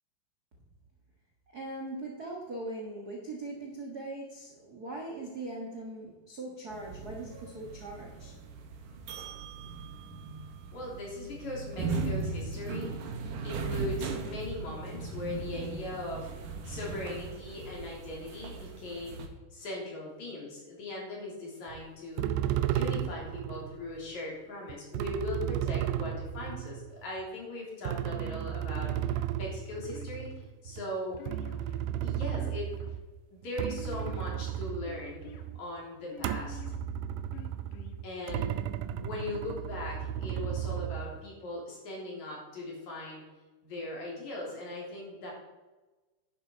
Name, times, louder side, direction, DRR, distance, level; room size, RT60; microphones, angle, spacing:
voice 1, 1.5-8.4, right 2 dB, 45° right, -1 dB, 1.3 m, -40 dB
sound 1, 6.7-19.3, right 4 dB, 65° right, 2.7 m, -38 dB
voice 2, 10.7-13.1 13.4-16.3 16.6-19.2 19.5-22.3 22.7-28.9 29.4-30.3 30.6-31.2 32.0-32.7 33.3-35.3 35.6-36.6 38.0-38.6 39.0-43.2 43.6-45.3, left 2 dB, 50° left, -3 dB, 4.5 m, -39 dB
sound 2, 21.7-21.8 22.2-23.8 24.7-27.2 27.9-33.1 33.4-35.7 36.2-41.2, right 10 dB, 85° right, 2.5 m, -34 dB
sound 3, 28.7-29.4 29.9-30.5 31.2-31.9 32.3-33.0 33.6-34.3 34.9-35.4 36.1-36.8 37.3-38.0, left 7 dB, 65° left, 2.4 m, -48 dB
11.0 x 11.0 x 4.6 m, 1.2 s
omnidirectional pair, 4.3 m